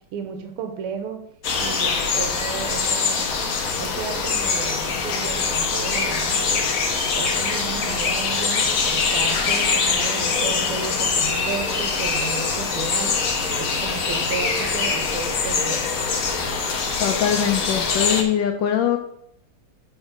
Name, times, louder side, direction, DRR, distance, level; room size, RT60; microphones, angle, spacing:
voice 1, 0.1-1.2 1.6-13.1 13.6-15.8, right 7 dB, 90° right, 6 dB, 1.6 m, -33 dB
sound 1, 1.4-18.2, left 5 dB, 55° left, 1.0 m, -23 dB
voice 2, 17.0-19.0, left 9 dB, 75° left, 5 dB, 1.2 m, -22 dB
7.2 x 4.0 x 5.1 m, 0.73 s
omnidirectional pair, 2.4 m